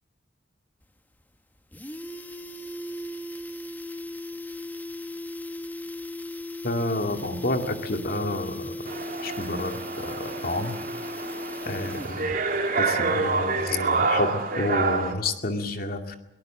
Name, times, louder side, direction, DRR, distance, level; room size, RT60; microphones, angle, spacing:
sound 1, 0.8-0.9 1.2-1.3 1.6-12.4 12.7-12.8, left 1 dB, 10° left, 0.9 m, -37 dB
voice 1, 6.6-8.8 9.2-9.7 10.0-10.8 11.6-12.4 12.7-16.2, left 2 dB, 55° left, 5 dB, 2.3 m, -29 dB
sound 2, 8.9-15.1, right 4 dB, 50° right, 3.0 m, -28 dB
23.0 x 18.5 x 7.5 m, 0.91 s
head